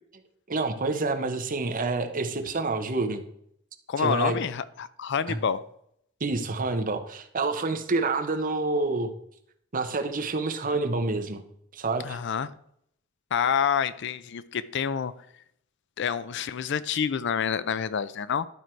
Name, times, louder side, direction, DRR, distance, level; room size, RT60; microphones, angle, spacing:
voice 1, 0.5-3.2 4.0-4.4 5.3-5.4 6.2-9.1 9.7-11.4 11.7-12.2, right 3 dB, 45° right, 0.9 m, -28 dB
voice 2, 3.9-5.6 12.0-12.5 13.3-15.1 16.0-18.5, left 7 dB, 60° left, 0.4 m, -28 dB
11.5 x 4.6 x 4.5 m
head